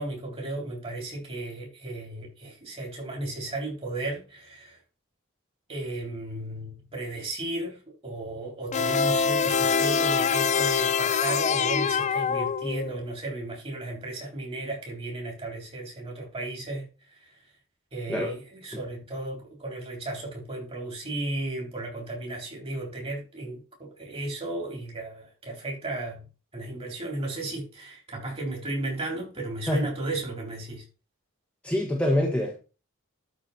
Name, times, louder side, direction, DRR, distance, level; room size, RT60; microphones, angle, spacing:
voice 1, 0.0-4.8 5.7-16.9 17.9-26.3 26.5-30.8, right 2 dB, 30° right, 3.9 m, -34 dB
sound 1, 8.7-13.1, left 6 dB, 35° left, 0.4 m, -24 dB
voice 2, 31.6-32.6, left 1 dB, 5° left, 1.4 m, -25 dB
12.0 x 4.6 x 4.3 m
head